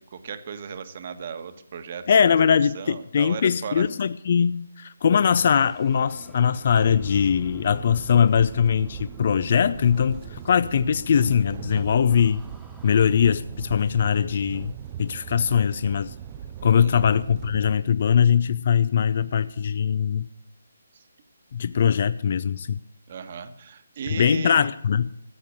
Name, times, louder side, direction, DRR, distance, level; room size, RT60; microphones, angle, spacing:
voice 1, 0.1-2.1 2.7-3.9 16.6-17.1 20.9-21.0 23.1-24.7, right 6 dB, 45° right, 1.4 m, -36 dB
voice 2, 2.1-12.4 12.8-14.7 15.0-16.1 16.6-20.3 21.5-22.8 24.2-25.1, left 7 dB, 50° left, 0.4 m, -21 dB
sound 1, 5.3-13.0, right 1 dB, 5° right, 1.3 m, -51 dB
sound 2, 6.7-17.8, right 10 dB, 25° right, 0.6 m, -39 dB
14.0 x 8.3 x 7.5 m
figure-of-eight pair, 145°, 0 cm